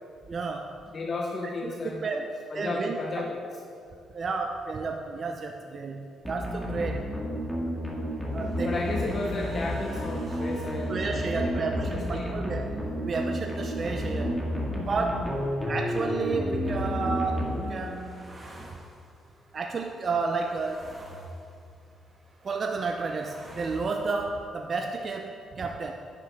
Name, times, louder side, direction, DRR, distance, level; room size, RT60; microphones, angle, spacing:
voice 1, 0.3-0.8 1.6-3.3 4.1-7.1 8.3-8.7 10.9-14.4 14.9-15.3 15.7-18.5 19.5-20.9 22.4-25.9, right 4 dB, 45° right, 3 dB, 0.7 m, -32 dB
voice 2, 0.9-3.4 8.6-12.4 15.4-15.6, left 3 dB, 45° left, 0 dB, 1.0 m, -34 dB
sound 1, 6.2-18.1, equal, 10° left, 2.1 m, -31 dB
sound 2, 8.4-14.8 15.1-15.2, right 4 dB, 75° right, 2.4 m, -45 dB
sound 3, 16.6-24.4, right 1 dB, 25° right, 1.8 m, -49 dB
10.5 x 9.6 x 3.7 m, 2.4 s
cardioid pair, 90°, 0 cm